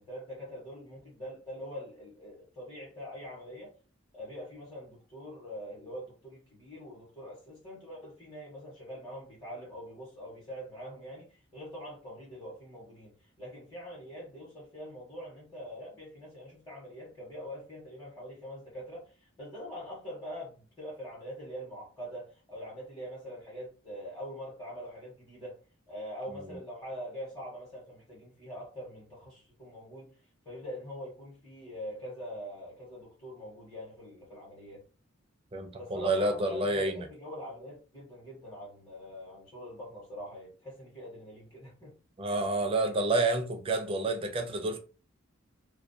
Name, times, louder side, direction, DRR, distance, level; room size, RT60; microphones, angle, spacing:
voice 1, 0.0-3.7 4.1-13.1 13.4-25.6 25.9-30.1 30.4-34.8 35.8-41.9, equal, 20° left, 0.9 m, -44 dB
voice 2, 35.5-37.0 42.2-44.8, right 2 dB, 25° right, 0.4 m, -29 dB
2.2 x 2.2 x 2.5 m
head